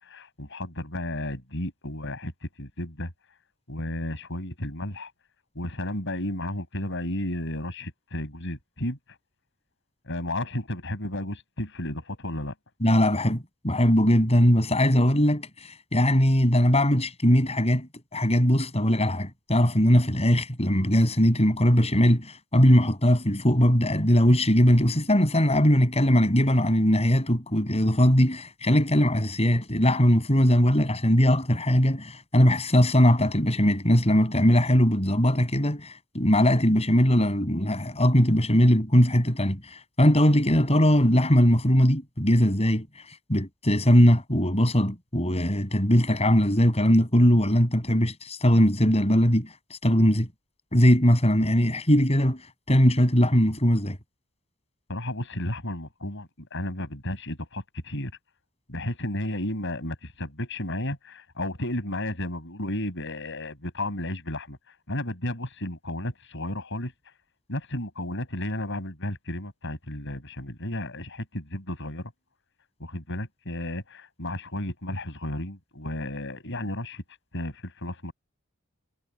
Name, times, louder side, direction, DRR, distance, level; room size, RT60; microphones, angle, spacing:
voice 1, 0.0-3.1 3.7-5.1 5.5-9.2 10.1-12.5 54.9-58.1 58.7-64.6 64.9-66.9 67.5-72.1 72.8-77.0 77.3-78.1, left 1 dB, 60° left, 7.7 m, -33 dB
voice 2, 12.8-42.9 43.3-49.5 49.8-50.3 50.7-52.4 52.7-54.0, equal, 30° left, 7.7 m, -20 dB
head